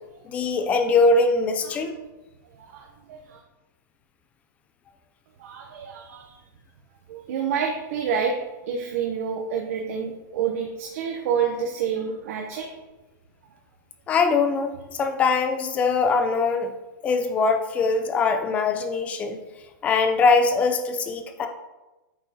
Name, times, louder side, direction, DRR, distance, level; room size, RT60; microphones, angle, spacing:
voice 1, 0.3-1.9 14.1-16.7 17.0-19.4 19.8-21.5, left 4 dB, 10° left, 7 dB, 0.4 m, -22 dB
voice 2, 2.5-3.4 5.4-6.4 7.1-8.4 8.6-12.7, right 7 dB, 45° right, 1 dB, 0.8 m, -28 dB
8.6 x 5.2 x 2.8 m, 1.1 s
supercardioid pair, 170°, 11 cm